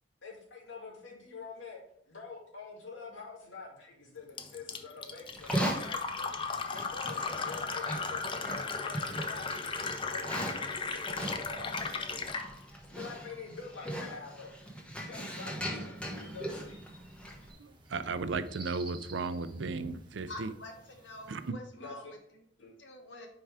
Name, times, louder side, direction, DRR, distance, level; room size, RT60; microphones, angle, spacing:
voice 1, 0.2-1.8 2.1-11.9 12.8-14.6 15.0-16.8 21.7-22.2 22.6-22.7, left 4 dB, 90° left, -2 dB, 2.3 m, -47 dB
Fill (with liquid), 4.4-12.5, left 4 dB, 30° left, 0.5 m, -36 dB
Livestock farm animals working animals, 5.3-17.5, equal, 5° left, 1.1 m, -39 dB
sound 1, 16.0-21.5, right 2 dB, 25° right, 1.2 m, -54 dB
voice 2, 17.6-20.5 21.3-21.6, right 4 dB, 70° right, 12 dB, 0.5 m, -35 dB
voice 3, 20.3-22.4 22.8-23.3, left 1 dB, 70° left, 3 dB, 1.4 m, -47 dB
5.6 x 4.8 x 4.8 m, 0.68 s
head